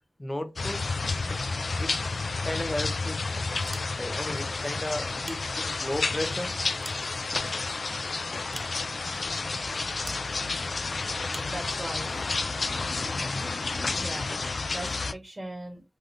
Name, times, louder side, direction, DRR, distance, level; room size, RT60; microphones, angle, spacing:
voice 1, 0.2-0.8 1.8-2.0 2.4-3.2 4.0-6.5, left 1 dB, 20° left, 0.7 m, -34 dB
sound 1, 0.6-15.1, left 3 dB, 70° left, 0.3 m, -30 dB
sound 2, 3.5-4.3 5.0-6.0 6.5-7.7 8.5-9.2 10.0-10.3 11.3-11.6, right 2 dB, 45° right, 0.5 m, -45 dB
voice 2, 9.0-9.8 11.5-12.1 14.0-14.3 14.7-15.8, right 1 dB, 20° right, 1.5 m, -40 dB
3.3 x 2.7 x 2.4 m
wide cardioid pair, 55°, 0 cm